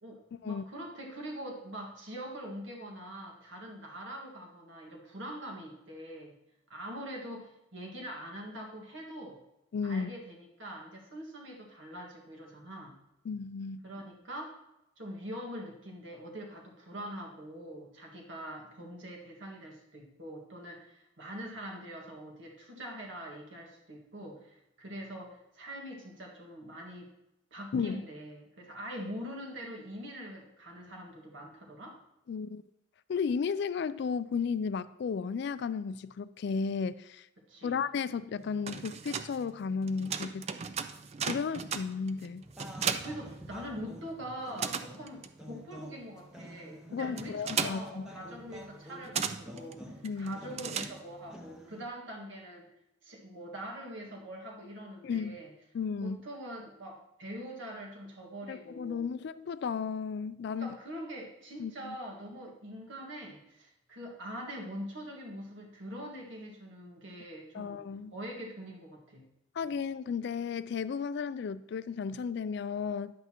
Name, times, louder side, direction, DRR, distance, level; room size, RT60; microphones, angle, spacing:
voice 1, 0.0-6.3 6.7-9.4 9.8-13.0 13.8-14.6 15.0-27.1 27.5-32.0 37.4-37.8 43.0-52.7 53.0-55.5 56.0-59.1 60.6-67.8 68.1-69.3, equal, 65° right, 0 dB, 1.7 m, -43 dB
voice 2, 9.7-10.1 13.3-13.8 27.7-28.0 32.3-32.6 33.1-37.3 37.6-40.5 41.3-42.4 46.9-48.1 50.0-50.4 55.0-55.4 55.7-56.2 58.5-60.8 61.6-62.0 67.5-68.1 69.6-73.1, left 5 dB, 55° left, 15 dB, 0.3 m, -34 dB
sound 1, 38.4-44.0 44.3-51.4, right 6 dB, 30° right, 0.3 m, -37 dB
sound 2, 42.4-51.9, equal, 5° right, 0.8 m, -49 dB
10.0 x 8.1 x 2.9 m, 0.89 s
head